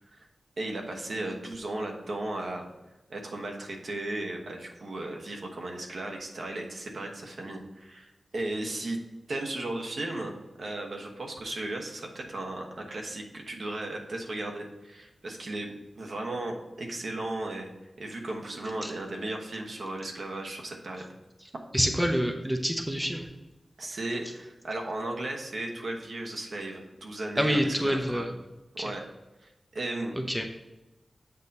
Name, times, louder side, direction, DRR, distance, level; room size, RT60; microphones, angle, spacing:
voice 1, 0.6-2.6 3.1-9.0 9.3-17.7 18.0-21.0 23.8-28.3 28.7-29.0 29.4-30.2, right 2 dB, 65° right, 1 dB, 1.1 m, -35 dB
voice 2, 21.7-23.3 27.4-28.3 28.8-28.9 30.1-30.5, equal, 5° right, 3 dB, 0.6 m, -27 dB
8.0 x 2.8 x 5.2 m, 1.1 s
wide cardioid pair, 120°, 0 cm